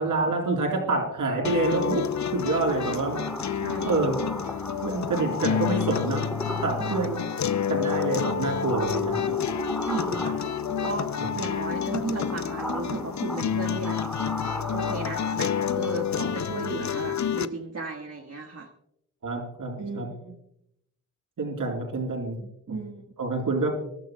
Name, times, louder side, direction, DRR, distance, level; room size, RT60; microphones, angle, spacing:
voice 1, 0.0-3.2 3.8-4.2 4.8-6.3 6.6-7.2 7.7-9.5 10.1-10.2 11.2-11.3 19.2-20.1 21.4-22.4 22.7-22.8 23.2-23.7, right 3 dB, 85° right, 2 dB, 4.0 m, -27 dB
near monster, 1.3-16.6, equal, ahead, 1.4 m, -38 dB
sound 1, 1.4-17.5, left 8 dB, 60° left, 0.6 m, -29 dB
voice 2, 3.5-3.9 6.8-7.1 9.8-10.4 10.8-14.0 14.7-18.7 19.8-20.4 22.4-23.1, right 3 dB, 50° right, 1 dB, 1.5 m, -35 dB
25.0 x 12.5 x 2.2 m, 0.77 s
cardioid pair, 65°, 32 cm